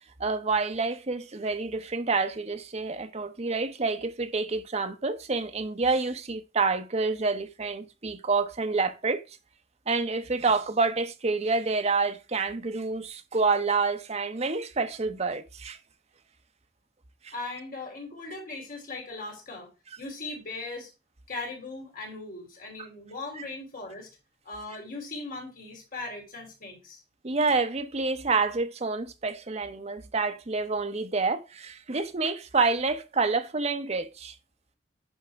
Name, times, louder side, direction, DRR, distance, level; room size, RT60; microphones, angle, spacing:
voice 1, 0.2-9.2 9.9-15.8 17.2-17.3 22.8-22.9 23.4-23.5 27.2-34.3, right 4 dB, 35° right, 0.7 m, -28 dB
voice 2, 17.3-19.7 20.0-20.9 21.3-24.1 24.4-27.0, left 2 dB, 55° left, 3.2 m, -39 dB
10.0 x 3.4 x 3.4 m
head